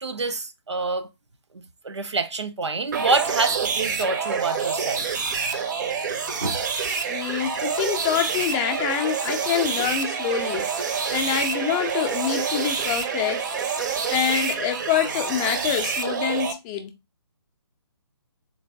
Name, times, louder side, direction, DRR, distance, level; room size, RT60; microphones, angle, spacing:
voice 1, 0.0-1.1 1.5-5.1 5.5-5.7 6.4-6.6 6.9-7.2, right 3 dB, 85° right, 0.7 m, -27 dB
sound 1, 2.9-16.5, right 6 dB, 45° right, 0.6 m, -27 dB
voice 2, 7.1-10.7 11.1-13.6 14.1-16.9, left 8 dB, 20° left, 0.5 m, -26 dB
3.9 x 2.4 x 3.4 m
figure-of-eight pair, 145°, 14 cm